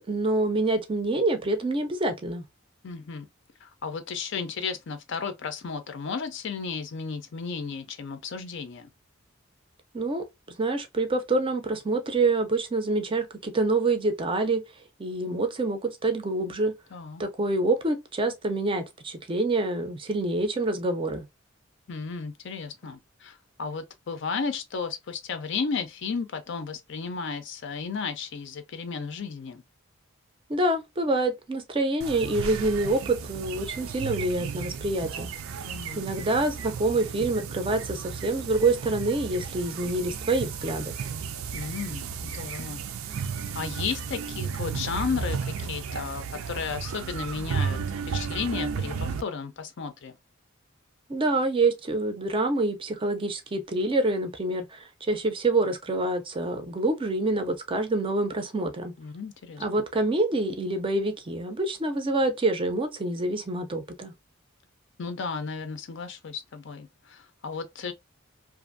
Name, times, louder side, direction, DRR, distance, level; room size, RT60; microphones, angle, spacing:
voice 1, 0.1-2.4 9.9-10.2 10.6-14.6 15.0-16.7 17.2-21.3 30.5-35.3 36.0-40.9 51.1-58.9 59.6-64.1, right 2 dB, 25° right, 0.4 m, -26 dB
voice 2, 2.8-3.3 3.6-8.9 16.9-17.2 21.9-29.6 35.7-36.0 41.5-42.8 43.6-47.8 48.1-50.1 59.0-59.6 65.0-67.9, left 5 dB, 60° left, 0.5 m, -34 dB
sound 1, 32.0-49.2, right 6 dB, 85° right, 0.4 m, -34 dB
2.5 x 2.5 x 2.5 m
head